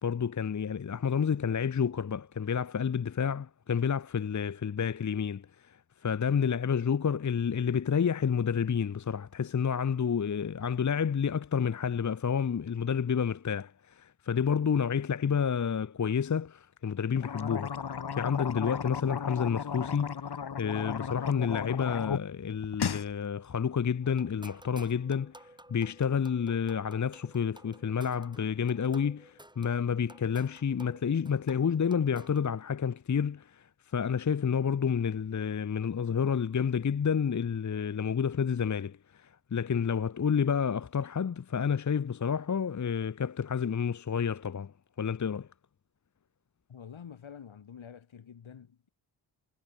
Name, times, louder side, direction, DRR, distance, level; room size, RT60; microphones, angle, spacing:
voice 1, 0.0-45.5, left 7 dB, 40° left, 0.9 m, -30 dB
sound 1, 17.1-22.2 22.5-23.1, left 7 dB, 55° left, 2.0 m, -35 dB
sound 2, 24.0-32.5, right 1 dB, 10° right, 3.0 m, -54 dB
voice 2, 46.7-48.9, left 7 dB, 75° left, 6.1 m, -48 dB
cardioid pair, 55°, 47 cm